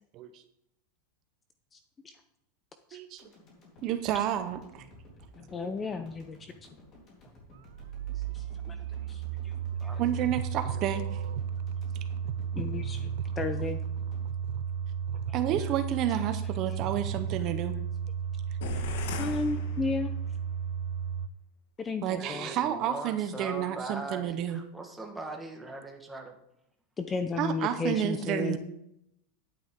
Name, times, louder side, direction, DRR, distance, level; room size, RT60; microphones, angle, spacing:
voice 1, 2.9-3.2 3.8-4.9 10.0-11.2 15.3-17.8 22.0-24.6 27.4-28.6, right 10 dB, 40° right, 9 dB, 0.8 m, -30 dB
sound 1, 3.2-15.4 15.8-15.9, equal, 35° left, 3.6 m, -54 dB
voice 2, 5.4-6.7 8.3-8.8 9.1-9.5 12.6-13.1 13.4-13.8 19.2-20.1 21.8-22.5 27.0-28.6, left 4 dB, 15° left, 9 dB, 0.6 m, -33 dB
sound 2, 7.6-21.3, right 7 dB, 75° right, 0.4 m, -34 dB
voice 3, 9.8-10.3 10.7-10.8 22.2-26.3 28.1-28.4, right 2 dB, 5° right, 1 dB, 1.5 m, -41 dB
sound 3, 18.6-20.5, left 4 dB, 70° left, 1.4 m, -37 dB
11.0 x 9.4 x 3.7 m, 0.80 s
supercardioid pair, 145°, 0 cm